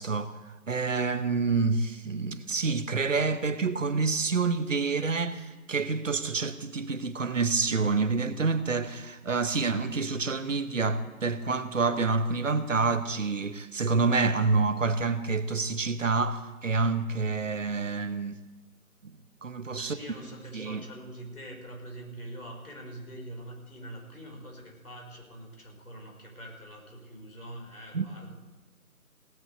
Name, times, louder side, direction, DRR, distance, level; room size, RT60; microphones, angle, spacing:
voice 1, 0.0-18.4 19.0-19.1 19.4-20.0 20.5-20.8 27.9-28.1, right 4 dB, 55° right, 1.0 m, -28 dB
voice 2, 19.8-28.3, right 1 dB, 75° left, 5.2 m, -44 dB
17.5 x 6.9 x 8.2 m
figure-of-eight pair, 155°, 44 cm